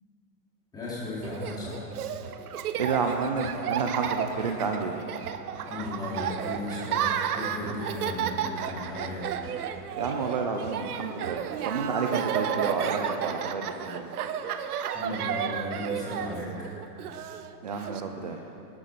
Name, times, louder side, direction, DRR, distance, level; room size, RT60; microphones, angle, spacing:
voice 1, 0.7-1.8 5.6-9.3 14.9-16.5, left 2 dB, 10° left, -9 dB, 4.0 m, -35 dB
Laughter, 1.2-18.0, right 9 dB, 65° right, 1.0 m, -32 dB
voice 2, 2.8-5.0 10.0-14.0 17.6-18.4, right 5 dB, 30° right, 3 dB, 0.4 m, -30 dB
19.5 x 9.8 x 6.5 m, 2.9 s
supercardioid pair, 175°, 50 cm